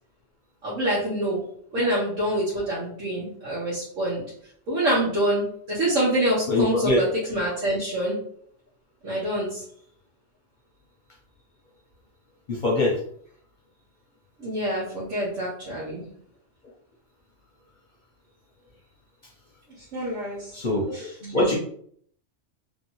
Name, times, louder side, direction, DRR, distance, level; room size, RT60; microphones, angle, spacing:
voice 1, 0.6-1.4 1.7-4.2 4.7-8.2 9.0-9.6 14.4-16.0 19.9-20.6 20.9-21.6, right 1 dB, 90° right, -7 dB, 1.3 m, -26 dB
voice 2, 6.5-7.0 12.5-12.9 20.5-21.0 21.2-21.6, left 2 dB, 50° left, -2 dB, 0.7 m, -23 dB
2.9 x 2.7 x 2.9 m, 0.62 s
omnidirectional pair, 1.3 m